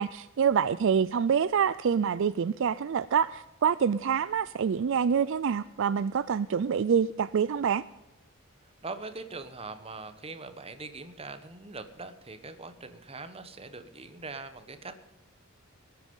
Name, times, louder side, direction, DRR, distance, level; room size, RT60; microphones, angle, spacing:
voice 1, 0.0-7.8, right 7 dB, 60° right, 16 dB, 0.4 m, -26 dB
voice 2, 8.8-14.9, right 3 dB, 25° right, 10 dB, 1.2 m, -42 dB
20.0 x 9.1 x 5.4 m, 0.99 s
head